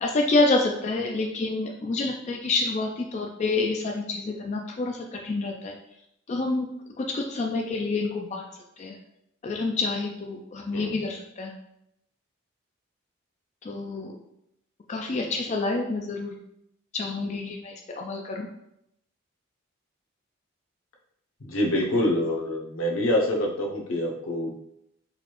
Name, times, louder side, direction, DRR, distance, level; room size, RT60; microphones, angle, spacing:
voice 1, 0.0-5.7 6.3-6.7 7.0-8.5 8.8-9.0 9.4-11.5 13.6-14.1 14.9-16.4 16.9-18.5, left 3 dB, 35° left, 1 dB, 0.3 m, -28 dB
voice 2, 21.4-24.5, left 1 dB, 85° left, -1 dB, 0.8 m, -26 dB
3.9 x 2.5 x 3.0 m, 0.78 s
head